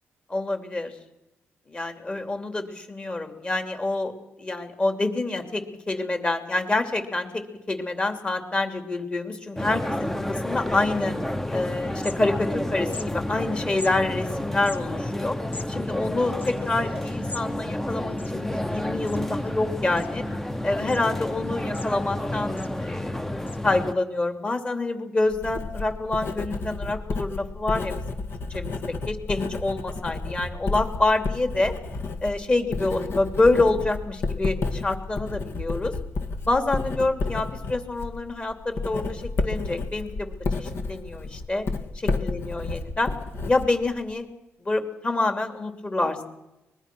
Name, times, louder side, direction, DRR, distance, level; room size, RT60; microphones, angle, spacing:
voice 1, 0.3-0.9 1.7-4.1 4.4-11.1 11.5-15.4 15.7-20.2 20.6-23.3 23.6-27.9 28.5-31.7 32.2-35.9 36.5-41.7 41.9-42.7 43.0-43.1 43.5-44.3 44.6-46.2, left 2 dB, 25° left, 7 dB, 2.9 m, -27 dB
sound 1, 9.6-23.9, left 1 dB, 5° left, 0.8 m, -30 dB
sound 2, 11.8-12.6 12.9-13.1 13.8-13.9 14.5-17.5 17.8-17.9 18.1-18.7 19.1-19.5 20.0-20.5 20.9-21.0 21.5-22.2 22.6-22.8 23.5-23.6, left 3 dB, 45° left, 1.7 m, -41 dB
Writing, 25.3-44.1, left 3 dB, 65° left, 2.1 m, -31 dB
24.5 x 21.0 x 6.2 m, 0.95 s
cardioid pair, 115°, 5 cm